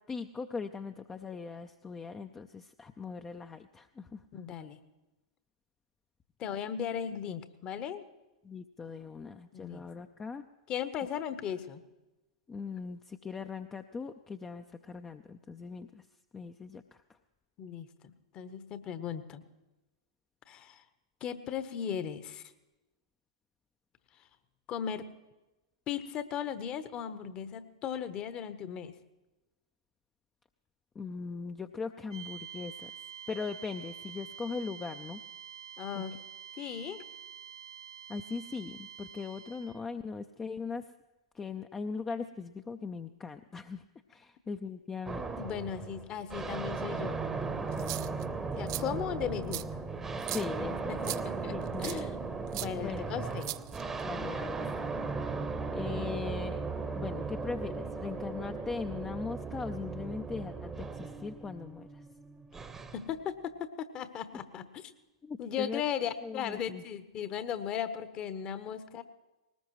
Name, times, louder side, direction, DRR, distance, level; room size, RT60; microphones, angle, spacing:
voice 1, 0.1-4.2 8.4-10.4 12.5-16.0 16.3-16.8 31.0-32.9 33.3-35.2 35.9-36.0 38.1-40.9 41.3-43.8 44.1-45.2 50.3-51.2 51.5-51.8 52.5-53.1 54.0-54.6 54.8-54.9 55.7-56.6 56.9-61.9 65.2-65.8 66.2-66.8, left 5 dB, 15° left, 8 dB, 0.5 m, -39 dB
voice 2, 4.3-4.8 6.4-8.0 9.5-9.8 10.7-11.8 17.6-19.4 20.5-20.8 21.2-22.5 24.7-25.1 25.9-28.9 35.8-36.1 36.6-37.0 45.4-47.2 48.6-49.8 50.9-51.5 51.8-52.2 52.6-53.5 62.9-64.9 65.4-69.0, left 8 dB, 30° left, 12 dB, 1.0 m, -37 dB
sound 1, 32.1-39.8, right 9 dB, 70° right, 1.2 m, -47 dB
sound 2, 45.1-63.1, right 4 dB, 10° right, 0.9 m, -37 dB
sound 3, 47.7-48.2 48.7-48.8 49.5-49.6 50.2-50.5 51.0-51.2 51.8-52.0 52.5-52.7 53.4-54.0, right 16 dB, 50° right, 0.4 m, -38 dB
20.0 x 18.5 x 3.1 m, 1.1 s
figure-of-eight pair, 100°, 3 cm